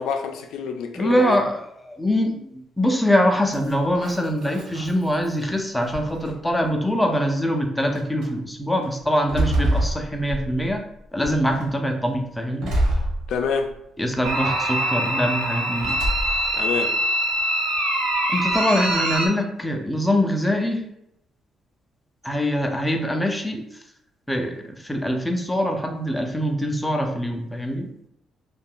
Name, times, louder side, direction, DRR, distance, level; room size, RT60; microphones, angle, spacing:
voice 1, 0.0-1.4 13.3-13.7 16.5-16.9, left 6 dB, 85° left, 5 dB, 0.4 m, -27 dB
voice 2, 0.9-10.8 11.1-12.7 14.0-16.0 18.3-20.8 22.2-23.6 24.3-27.9, equal, 5° left, 2 dB, 0.3 m, -23 dB
sound 1, 3.5-5.4 5.9-6.6 7.4-7.5 7.9-8.3 8.8-10.8 11.2-11.7 12.6-13.8 14.2-14.8 15.8-16.6, right 1 dB, 75° right, 0.9 m, -27 dB
sound 2, 14.2-19.3, right 1 dB, 60° right, 0.6 m, -24 dB
2.5 x 2.2 x 3.5 m, 0.77 s
cardioid pair, 175°, 0 cm